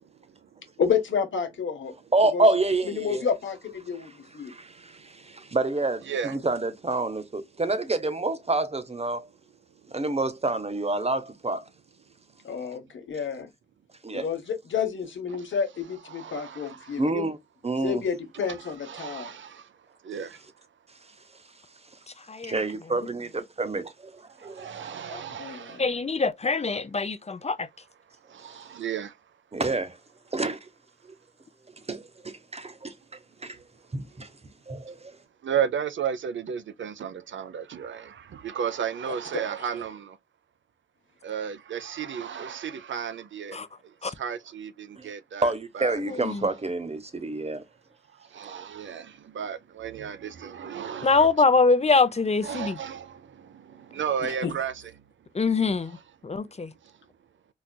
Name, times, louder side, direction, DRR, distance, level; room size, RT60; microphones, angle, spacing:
voice 1, 0.8-1.9 2.3-2.4 2.9-4.5 12.4-13.5 14.1-17.3 17.8-19.3 25.4-25.8 54.3-54.5, left 6 dB, 90° left, 0.9 m, -30 dB
voice 2, 2.1-3.2 4.4-9.3 9.9-11.6 14.0-14.3 17.0-17.4 17.6-18.0 22.4-24.9 29.5-30.0 30.3-30.7 31.9-32.9 33.4-33.6 33.9-34.3 34.7-35.2 45.0-45.1 45.4-47.6, right 2 dB, 35° right, 0.8 m, -28 dB
voice 3, 6.1-6.4 15.3-15.4 16.1-17.0 18.9-19.7 20.0-20.4 24.4-25.8 28.3-29.1 35.4-40.2 41.2-43.6 44.0-45.5 45.7-46.0 48.3-51.3 52.4-54.7, right 8 dB, 85° right, 0.5 m, -33 dB
voice 4, 22.1-22.6 25.1-25.2 25.8-27.7 43.5-43.7 44.0-44.1 46.1-46.5 51.0-52.8 55.3-56.0 56.2-56.7, left 4 dB, 35° left, 0.5 m, -24 dB
4.1 x 2.3 x 2.2 m
cardioid pair, 45°, 19 cm